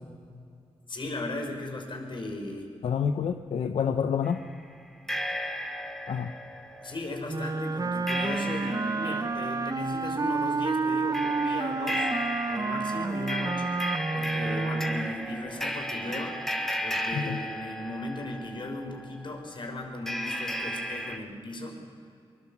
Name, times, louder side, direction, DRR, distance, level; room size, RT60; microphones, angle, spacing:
voice 1, 0.9-2.7 6.8-12.1 12.5-13.7 14.1-16.4 16.8-21.8, left 2 dB, 55° left, 3 dB, 5.7 m, -36 dB
voice 2, 2.8-4.4 6.1-6.3 17.1-17.4, left 7 dB, 80° left, 7 dB, 0.8 m, -28 dB
sound 1, 4.2-4.4 5.1-19.1 20.1-21.2, equal, 5° left, 2.5 m, -35 dB
Wind instrument woodwind instrument, 7.3-15.1, right 4 dB, 35° right, 0.8 m, -30 dB
24.0 x 21.0 x 7.2 m, 2.4 s
cardioid pair, 60°, 10 cm